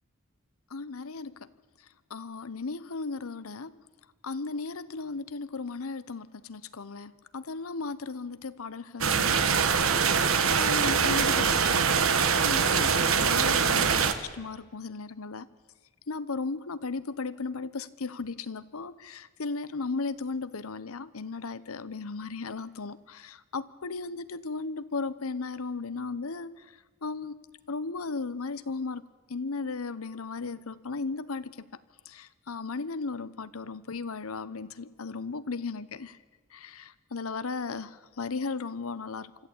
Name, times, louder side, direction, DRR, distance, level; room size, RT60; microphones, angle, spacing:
voice 1, 0.7-1.4 2.1-3.8 4.2-9.7 10.1-10.3 10.6-11.9 12.3-15.5 16.1-26.6 27.0-27.4 27.7-29.0 29.3-31.7 32.1-36.2 36.5-39.3, left 4 dB, 85° left, 15 dB, 0.9 m, -36 dB
sound 1, 9.0-14.1, right 6 dB, 70° right, 1.4 m, -23 dB
25.0 x 14.0 x 8.7 m, 1.3 s
head